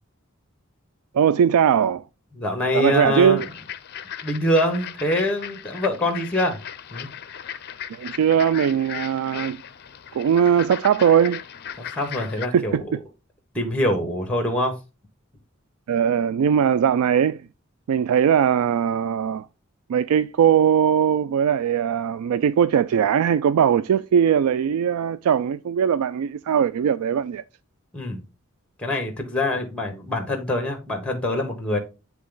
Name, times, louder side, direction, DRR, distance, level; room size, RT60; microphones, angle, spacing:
voice 1, 1.1-2.0 2.7-3.5 7.9-9.6 10.1-11.4 12.5-12.8 15.9-17.5 17.9-19.5 19.9-27.4, right 8 dB, 90° right, 0.3 m, -20 dB
voice 2, 2.3-3.5 4.2-6.6 6.9-7.1 11.8-12.9 13.5-14.8 27.9-28.2 28.8-31.8, left 1 dB, 5° left, 1.2 m, -24 dB
sound 1, 3.4-12.5, left 9 dB, 50° left, 0.5 m, -37 dB
9.5 x 3.4 x 3.8 m
head